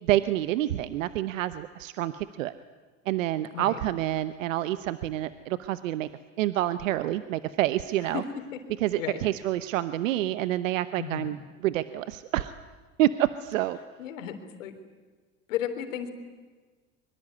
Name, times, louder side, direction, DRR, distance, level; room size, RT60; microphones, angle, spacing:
voice 1, 0.0-2.5 3.1-6.1 6.4-8.2 8.8-11.4 11.6-12.5 13.0-13.8, right 14 dB, 80° right, 13 dB, 1.0 m, -28 dB
voice 2, 11.0-11.3 14.0-14.8 15.5-16.1, left 10 dB, 80° left, 7 dB, 3.6 m, -34 dB
23.5 x 23.0 x 9.6 m, 1.4 s
hypercardioid pair, 85°, 38 cm